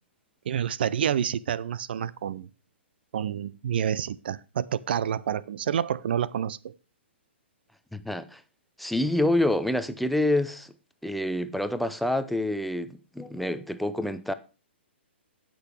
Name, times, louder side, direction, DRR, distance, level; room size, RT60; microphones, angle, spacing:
voice 1, 0.5-2.5 3.1-6.7, right 9 dB, 55° right, 0.5 m, -28 dB
voice 2, 7.9-8.4 8.8-10.7 11.0-14.3, left 1 dB, ahead, 0.6 m, -27 dB
17.5 x 6.2 x 3.3 m
figure-of-eight pair, 120°, 6 cm